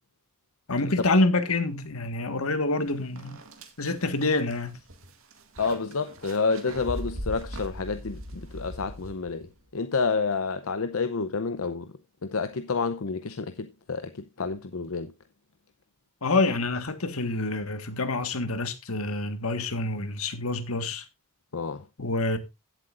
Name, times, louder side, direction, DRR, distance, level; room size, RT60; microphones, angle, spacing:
voice 1, 0.7-3.4 3.8-4.8 16.2-21.0 22.0-22.4, left 2 dB, 90° left, 1.6 m, -27 dB
sound 1, 2.7-2.8 3.2-9.5, equal, 70° right, 2.1 m, -40 dB
voice 2, 5.6-11.9 12.2-15.1 21.5-21.8, left 4 dB, 70° left, 0.7 m, -29 dB
16.5 x 7.8 x 2.5 m
head